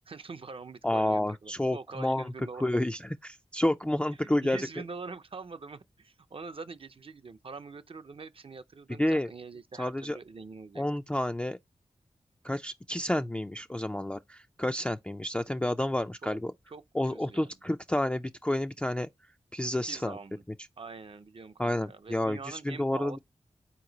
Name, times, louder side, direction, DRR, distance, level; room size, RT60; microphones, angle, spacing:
voice 1, 0.1-2.7 4.2-10.8 16.2-16.4 16.7-16.8 17.1-17.5 19.9-20.4 20.8-23.2, right 4 dB, 50° right, 0.5 m, -44 dB
voice 2, 0.8-2.3 2.6-4.7 9.0-9.3 9.8-10.2 10.8-11.6 12.4-16.5 16.9-19.1 19.5-20.2 21.6-23.2, left 1 dB, 10° left, 0.3 m, -30 dB
4.3 x 2.9 x 3.8 m
wide cardioid pair, 65°, 12 cm